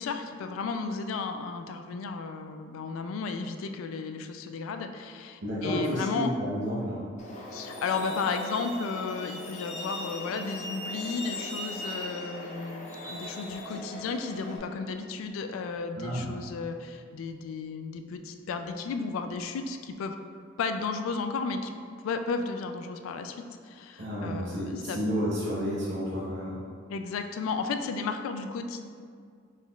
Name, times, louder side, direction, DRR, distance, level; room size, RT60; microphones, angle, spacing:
voice 1, 0.0-6.3 7.5-20.2 20.6-21.7 22.0-25.0 26.9-28.8, left 4 dB, 85° left, 7 dB, 0.3 m, -34 dB
voice 2, 5.4-7.0 16.0-16.3 24.0-26.5, equal, 60° right, -8 dB, 0.7 m, -31 dB
Truck, 7.2-14.6, left 1 dB, 35° left, 0.6 m, -39 dB
4.2 x 3.8 x 2.3 m, 2.2 s
head